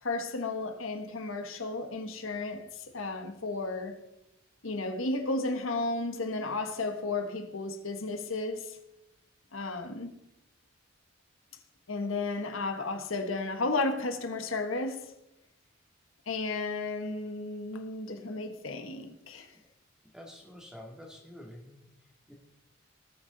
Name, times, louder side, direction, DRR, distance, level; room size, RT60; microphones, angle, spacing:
voice 1, 0.0-4.0 4.6-8.8 9.5-10.1 11.9-15.1 16.3-19.5, left 3 dB, 85° left, 1.4 m, -33 dB
voice 2, 20.1-21.8 22.3-22.4, left 1 dB, 5° right, 2.0 m, -47 dB
19.5 x 6.7 x 4.0 m
head